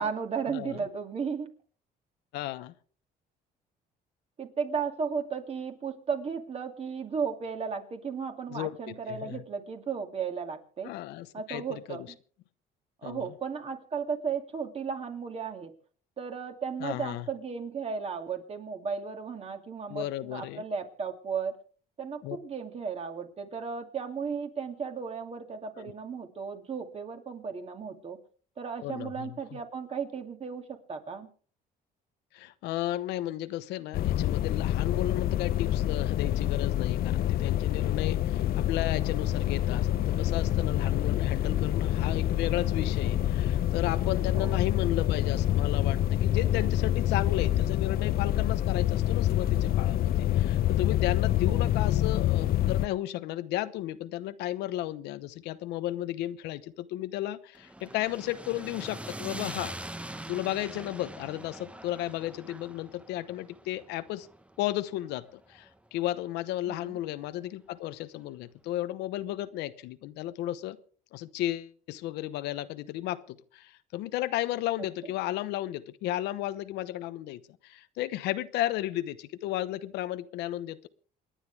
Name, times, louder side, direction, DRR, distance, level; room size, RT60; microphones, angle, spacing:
voice 1, 0.0-1.5 4.4-10.9 11.3-12.2 13.0-15.7 16.2-21.6 22.0-28.2 28.6-31.3 44.3-44.6 51.5-51.7 66.7-67.0, right 6 dB, 35° right, 5 dB, 2.6 m, -35 dB
voice 2, 2.3-2.7 8.5-9.4 10.8-12.1 13.0-13.3 16.8-17.3 19.9-20.6 22.2-22.4 25.8-25.9 28.8-29.6 32.3-59.7 60.3-64.3 64.6-70.8 71.1-80.9, left 14 dB, 90° left, 13 dB, 0.9 m, -34 dB
sound 1, 33.9-52.9, left 12 dB, 60° left, 0.7 m, -27 dB
sound 2, 57.6-65.8, right 1 dB, 5° right, 0.9 m, -43 dB
28.0 x 10.0 x 3.5 m, 0.43 s
cardioid pair, 110°, 17 cm